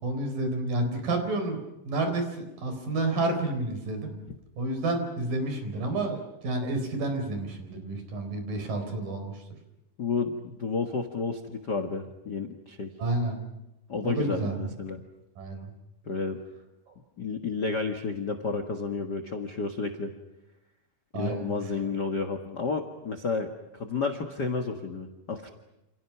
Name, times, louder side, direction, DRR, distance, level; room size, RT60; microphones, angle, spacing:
voice 1, 0.0-1.6 1.9-4.1 4.6-9.3 13.0-13.4 14.0-14.6 15.4-15.7 21.1-21.5, right 2 dB, 60° right, 6 dB, 5.6 m, -30 dB
voice 2, 10.0-12.9 13.9-15.0 16.0-16.4 17.2-20.1 21.1-25.5, left 4 dB, 55° left, 4 dB, 1.1 m, -31 dB
29.0 x 29.0 x 6.0 m, 0.93 s
omnidirectional pair, 4.4 m